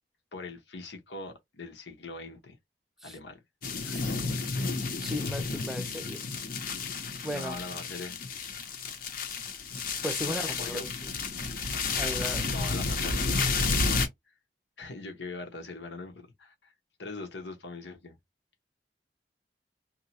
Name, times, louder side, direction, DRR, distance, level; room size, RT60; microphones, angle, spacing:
voice 1, 0.3-2.6 3.0-3.4 3.8-4.5 7.3-8.1 10.2-10.9 12.4-14.3 14.8-16.7 17.0-18.2, left 3 dB, 85° left, 1.1 m, -42 dB
sound 1, 3.6-14.1, left 4 dB, 55° left, 0.8 m, -31 dB
voice 2, 5.0-6.3 7.2-7.6 10.0-11.1 12.0-12.5, equal, ahead, 0.6 m, -36 dB
2.8 x 2.2 x 4.2 m
head